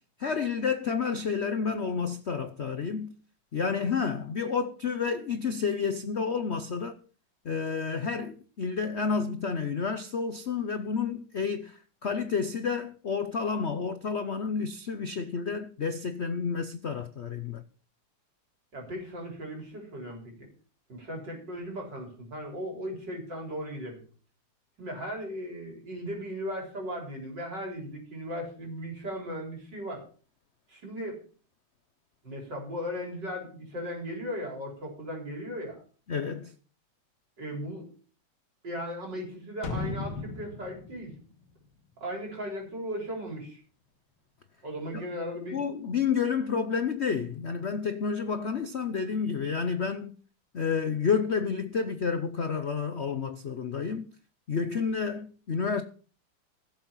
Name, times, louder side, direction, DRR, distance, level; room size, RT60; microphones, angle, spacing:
voice 1, 0.2-3.1 3.5-6.9 7.4-17.6 36.1-36.5 44.9-45.0 45.5-50.1 50.5-54.1 54.5-55.8, left 5 dB, 85° left, 0.5 m, -30 dB
voice 2, 18.7-20.5 20.9-24.0 24.8-30.0 30.7-31.2 32.2-35.8 37.4-37.9 38.6-41.2 42.0-43.6 44.6-45.6, equal, 50° right, 4.7 m, -37 dB
sound 1, 39.6-42.4 42.8-42.9, left 3 dB, 70° left, 2.2 m, -37 dB
16.0 x 7.4 x 5.6 m
omnidirectional pair, 2.4 m